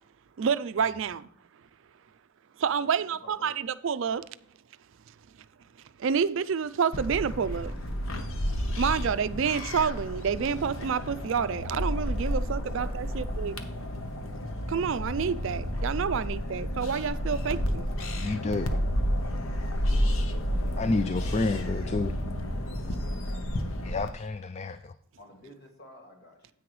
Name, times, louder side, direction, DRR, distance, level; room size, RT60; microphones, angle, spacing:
voice 1, 0.4-1.3 2.6-4.3 6.0-7.8 8.2-13.5 14.7-17.9, right 6 dB, 60° right, 0.4 m, -29 dB
voice 2, 2.8-3.5 12.2-13.2 25.2-26.5, left 1 dB, 45° left, 2.0 m, -51 dB
sound 1, 6.9-24.1, equal, 65° left, 0.9 m, -31 dB
voice 3, 18.1-18.7 20.8-22.2 23.8-24.9, left 3 dB, 30° left, 0.3 m, -29 dB
9.8 x 8.6 x 3.1 m
head